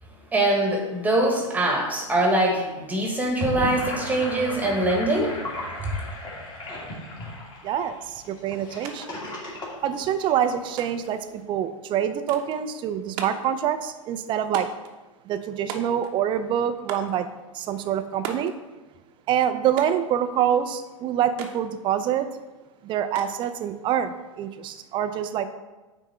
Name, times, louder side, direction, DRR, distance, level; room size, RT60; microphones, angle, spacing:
voice 1, 0.3-5.4 5.8-5.9, right 1 dB, 10° right, 0 dB, 1.4 m, -23 dB
Gurgling / Sink (filling or washing), 3.2-10.7, left 1 dB, 25° left, 2.2 m, -35 dB
voice 2, 7.6-9.2 9.8-14.7 15.3-17.3 17.5-18.5 19.3-22.3 22.8-25.5, right 9 dB, 30° right, 10 dB, 0.5 m, -26 dB
sound 1, 8.8-9.0 9.2-10.0 10.8-11.2 12.3-12.6 13.2-13.5 14.5-14.9 15.7-16.2 16.9-17.2 18.2-18.6 19.8-20.1 21.4-21.6 23.2-23.6, right 6 dB, 45° right, 0.9 m, -37 dB
9.2 x 3.6 x 4.3 m, 1.2 s
hypercardioid pair, 105°, 17 cm